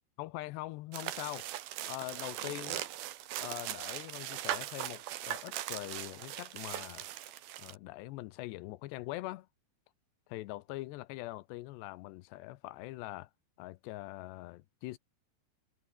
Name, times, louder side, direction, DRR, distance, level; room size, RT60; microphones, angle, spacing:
voice 1, 0.2-1.5 1.9-2.9 3.4-7.1 7.6-9.5 10.3-13.3 13.6-15.0, left 18 dB, 85° left, 3.0 m, -43 dB
sound 1, 0.9-7.8, right 13 dB, 70° right, 3.0 m, -40 dB
omnidirectional pair, 4.9 m